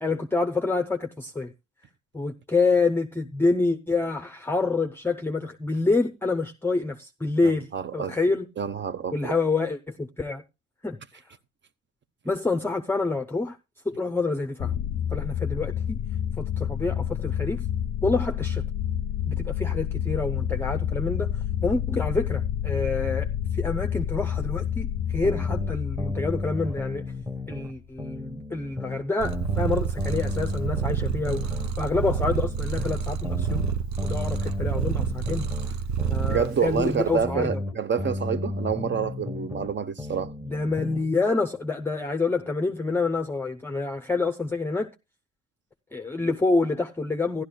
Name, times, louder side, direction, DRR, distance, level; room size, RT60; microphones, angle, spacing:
voice 1, 0.0-1.5 2.1-8.5 9.1-10.4 10.8-11.2 12.2-13.6 13.8-14.7 15.1-16.0 16.4-17.7 18.0-18.6 19.3-23.3 23.5-27.0 27.5-33.6 34.0-35.4 36.1-37.6 40.4-44.9 45.9-47.4, left 3 dB, 5° left, 0.6 m, -27 dB
voice 2, 7.4-8.2 8.6-9.3 36.3-40.3, right 7 dB, 40° right, 0.8 m, -28 dB
sound 1, 14.6-27.5, left 9 dB, 50° left, 0.6 m, -29 dB
sound 2, 25.2-27.7 28.0-31.7 32.0-35.7 36.0-39.7 40.0-41.1, left 2 dB, 10° right, 1.2 m, -34 dB
Purr, 29.2-37.3, right 7 dB, 70° right, 0.8 m, -29 dB
15.0 x 11.5 x 2.2 m
cardioid pair, 90°, 30 cm